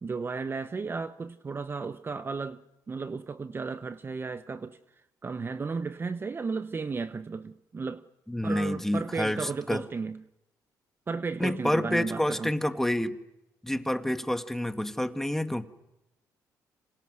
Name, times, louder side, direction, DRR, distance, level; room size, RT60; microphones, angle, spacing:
voice 1, 0.0-4.8 5.2-8.0 8.4-10.2 11.1-12.5, right 4 dB, 30° right, 1.0 m, -34 dB
voice 2, 8.3-9.8 11.4-13.2 13.6-15.7, left 1 dB, 5° left, 1.9 m, -28 dB
29.0 x 26.5 x 6.3 m
cardioid pair, 80°, 7 cm